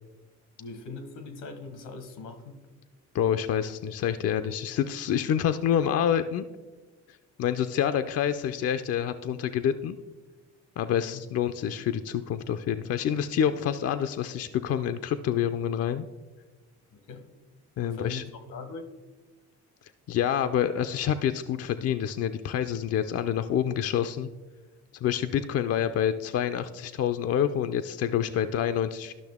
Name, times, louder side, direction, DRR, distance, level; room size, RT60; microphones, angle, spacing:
voice 1, 0.6-2.7 10.9-11.2 16.9-17.2 17.8-18.2 18.5-18.9, left 3 dB, 85° left, 1.2 m, -41 dB
voice 2, 3.1-6.5 7.4-10.0 10.8-16.1 17.8-18.2 20.1-24.3 25.0-29.1, left 9 dB, 55° left, 0.5 m, -27 dB
12.0 x 5.9 x 3.5 m
cardioid pair, 90°, 30 cm